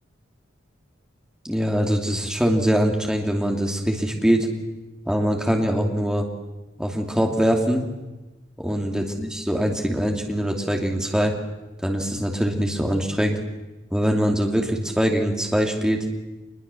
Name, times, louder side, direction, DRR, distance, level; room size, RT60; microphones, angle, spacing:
voice 1, 1.4-4.5 5.1-6.3 6.8-7.9 8.6-11.4 11.8-13.4 13.9-16.0, equal, 5° right, 1 dB, 2.6 m, -23 dB
25.0 x 21.5 x 7.0 m, 1.1 s
head